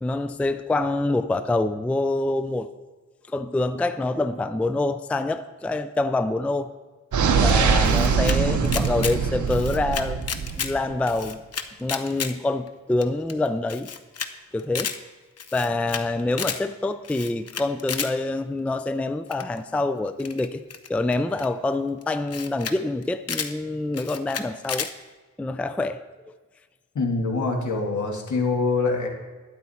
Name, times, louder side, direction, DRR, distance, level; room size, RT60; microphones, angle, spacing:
voice 1, 0.0-2.7 3.3-6.7 7.4-10.2 10.6-11.4 11.8-13.9 14.5-14.9 15.5-20.6 20.9-24.9 25.4-26.0, left 2 dB, 5° left, 0.3 m, -26 dB
sound 1, 7.1-10.9, right 5 dB, 70° right, 0.8 m, -22 dB
Camera, 7.5-8.4 8.6-9.2 9.5-10.7 11.0-12.3 12.7-12.8 13.0-13.1 13.3-13.4 13.7-14.3 14.6-15.0 15.4-16.0 16.3-16.6 17.0-18.1 19.3-19.6 20.2-21.5 22.0-22.1 22.3-22.8 23.0-23.5 23.9-24.9, left 7 dB, 55° left, 0.7 m, -31 dB
voice 2, 27.0-29.1, left 3 dB, 75° left, 2.0 m, -24 dB
12.0 x 9.6 x 4.2 m
wide cardioid pair, 140°, 30 cm